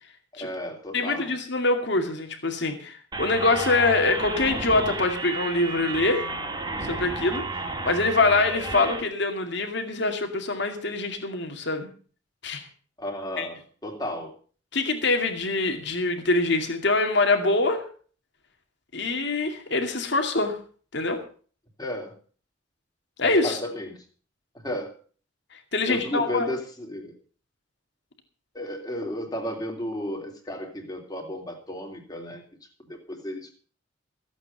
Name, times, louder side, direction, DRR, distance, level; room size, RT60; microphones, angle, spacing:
voice 1, 0.3-1.3 13.0-14.3 21.8-22.1 23.4-24.0 24.6-25.0 25.8-27.1 28.5-32.4 32.8-33.5, left 1 dB, 20° left, 2 dB, 3.1 m, -33 dB
voice 2, 0.9-6.3 6.8-7.4 7.8-11.9 12.4-12.6 13.4-13.5 14.7-17.8 18.9-20.6 20.9-21.2 23.2-23.6 25.7-26.5, left 3 dB, 65° left, 5 dB, 2.3 m, -24 dB
sound 1, 3.1-9.0, right 2 dB, 25° right, 2.4 m, -32 dB
15.0 x 8.3 x 6.7 m, 0.42 s
head